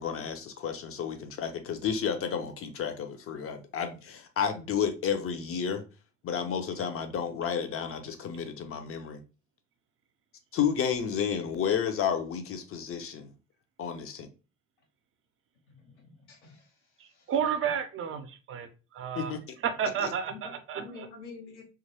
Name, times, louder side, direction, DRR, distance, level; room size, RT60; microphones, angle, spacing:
voice 1, 0.0-5.8 6.2-9.2 10.5-13.3 13.8-14.3 19.1-19.4 20.0-20.1, left 7 dB, 40° left, 0.7 m, -31 dB
voice 2, 15.7-17.3 20.3-21.7, left 4 dB, 80° left, 0.9 m, -49 dB
voice 3, 17.0-19.3 19.6-21.1, right 7 dB, 40° right, 0.6 m, -32 dB
2.9 x 2.4 x 2.8 m
figure-of-eight pair, 50°, 34 cm